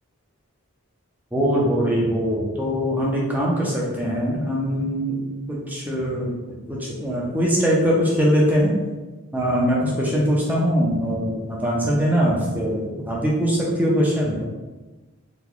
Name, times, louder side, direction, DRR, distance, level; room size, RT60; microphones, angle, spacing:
voice 1, 1.3-6.3 6.7-8.7 9.3-14.4, equal, 10° right, -4 dB, 0.5 m, -22 dB
3.0 x 2.2 x 3.7 m, 1.2 s
head